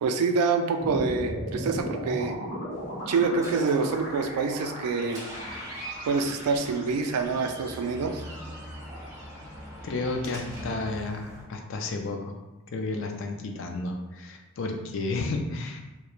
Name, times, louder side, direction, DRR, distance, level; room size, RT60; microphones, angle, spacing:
voice 1, 0.0-2.4 3.1-5.2 6.1-8.2, right 4 dB, 85° right, 6 dB, 0.3 m, -26 dB
sound 1, 0.8-9.1, equal, 35° left, 0.8 m, -37 dB
Door, 2.7-11.4, equal, 15° right, 0.4 m, -42 dB
voice 2, 9.8-12.4 12.7-15.8, left 3 dB, 55° left, 3 dB, 0.3 m, -32 dB
2.3 x 2.2 x 2.9 m, 1.1 s
head